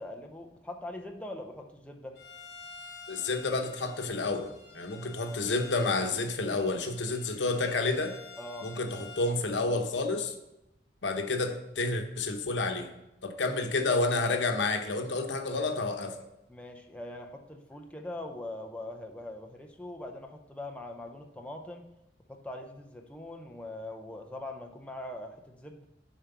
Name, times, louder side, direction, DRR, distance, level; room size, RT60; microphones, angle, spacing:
voice 1, 0.0-2.2 8.4-8.7 16.5-21.9 22.3-25.9, left 1 dB, 5° left, 3 dB, 0.6 m, -42 dB
Bowed string instrument, 2.1-9.4, left 4 dB, 70° left, 1.2 m, -49 dB
voice 2, 3.1-8.1 8.6-8.9 9.2-10.3 11.0-12.9 13.2-16.1, left 3 dB, 85° left, 5 dB, 0.9 m, -30 dB
7.4 x 4.6 x 6.7 m, 0.91 s
head